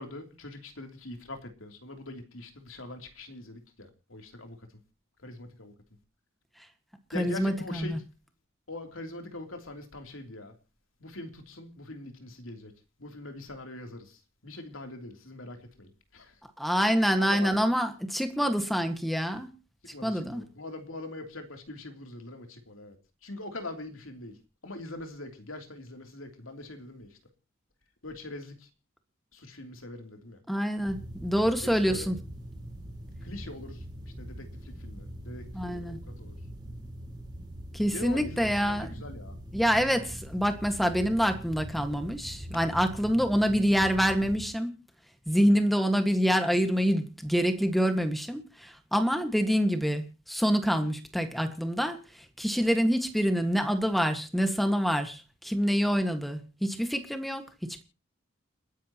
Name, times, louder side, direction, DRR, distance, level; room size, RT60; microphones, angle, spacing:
voice 1, 0.0-4.7 5.2-5.7 7.1-8.0 8.7-10.5 11.0-12.7 13.0-16.4 16.8-16.9 17.2-17.6 19.8-23.0 23.2-27.2 28.0-28.7 29.3-30.4 31.6-32.1 33.2-33.8 34.2-36.4 37.9-39.3, left 2 dB, 80° left, 3.2 m, -43 dB
voice 2, 7.1-8.0 16.6-19.5 20.0-20.4 30.5-32.2 35.5-36.0 37.7-38.9 39.5-44.7 45.3-57.8, equal, ahead, 1.7 m, -26 dB
sound 1, 30.8-44.5, right 1 dB, 20° right, 4.2 m, -42 dB
29.5 x 10.0 x 3.0 m
head